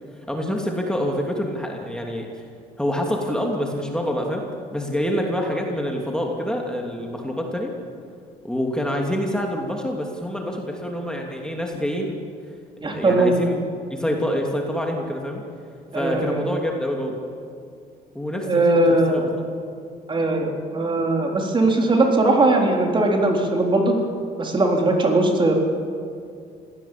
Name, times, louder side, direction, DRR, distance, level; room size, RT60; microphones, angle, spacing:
voice 1, 0.3-2.3 2.8-4.4 4.7-7.7 8.4-12.2 12.8-13.6 13.9-15.4 15.9-17.1 18.1-19.2, equal, 5° left, 0 dB, 2.9 m, -26 dB
voice 2, 12.8-13.4 15.9-16.4 18.5-19.3 20.1-23.9 24.4-25.5, right 2 dB, 30° right, 1 dB, 3.8 m, -19 dB
25.5 x 17.0 x 8.5 m, 2.3 s
cardioid pair, 110°, 17 cm